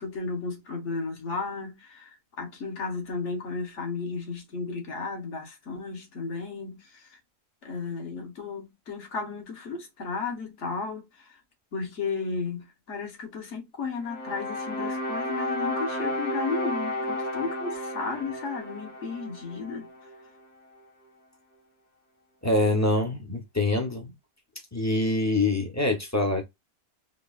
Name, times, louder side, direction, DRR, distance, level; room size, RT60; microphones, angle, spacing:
voice 1, 0.0-7.2 7.6-11.4 11.7-19.9, left 4 dB, 60° left, 1.4 m, -34 dB
sound 1, 14.0-20.3, left 1 dB, 85° left, 1.8 m, -32 dB
voice 2, 22.4-24.1 24.7-26.4, left 2 dB, 15° left, 0.7 m, -25 dB
3.9 x 2.9 x 2.3 m
omnidirectional pair, 1.4 m